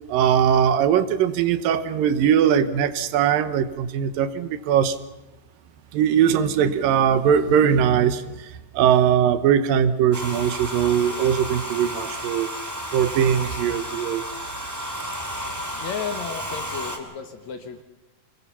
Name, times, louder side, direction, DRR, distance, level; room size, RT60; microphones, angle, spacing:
voice 1, 0.1-5.0 5.9-12.5 12.9-14.2, right 8 dB, 75° right, 12 dB, 2.6 m, -20 dB
Domestic sounds home sounds, 10.1-17.0, equal, 5° right, 2.0 m, -32 dB
voice 2, 15.7-17.8, left 7 dB, 60° left, 7 dB, 2.2 m, -33 dB
26.5 x 21.5 x 5.7 m, 1.1 s
omnidirectional pair, 4.2 m